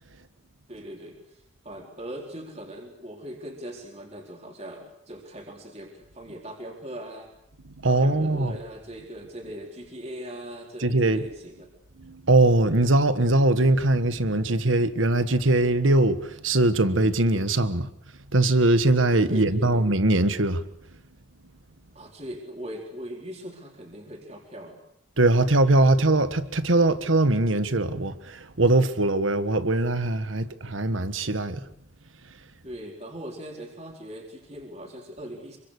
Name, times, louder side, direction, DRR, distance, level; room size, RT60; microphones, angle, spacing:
voice 1, 0.7-7.3 7.8-11.7 19.3-19.8 21.9-24.8 32.6-35.6, equal, 35° right, 4.3 m, -40 dB
voice 2, 7.8-8.6 10.8-11.2 12.0-17.9 18.3-20.6 25.2-31.6, right 2 dB, 85° right, 1.5 m, -21 dB
27.0 x 24.5 x 6.7 m
head